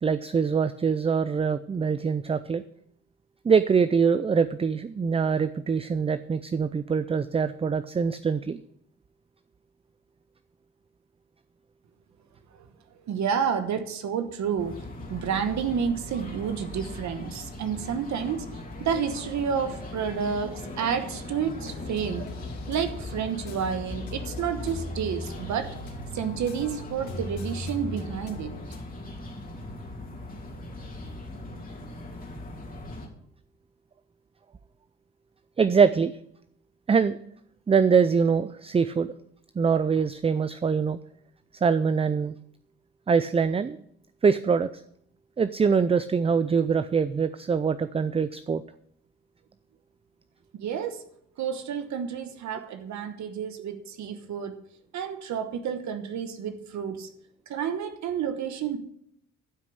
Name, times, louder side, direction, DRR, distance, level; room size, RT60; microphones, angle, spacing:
voice 1, 0.0-2.6 3.4-8.6 35.6-36.1 36.9-37.2 37.7-39.1 39.6-41.0 41.6-42.4 43.1-43.8 44.2-44.7 45.4-48.6, right 6 dB, 20° right, 0.4 m, -23 dB
voice 2, 13.0-14.8 15.1-22.3 22.7-25.7 26.1-28.5 50.6-51.0 51.4-54.6 54.9-57.1 57.5-58.8, right 7 dB, 70° right, 1.1 m, -30 dB
sound 1, 14.6-33.1, left 1 dB, 30° left, 2.7 m, -40 dB
sound 2, 21.6-28.8, left 2 dB, 70° left, 3.1 m, -38 dB
12.0 x 6.0 x 6.3 m
cardioid pair, 90°, 30 cm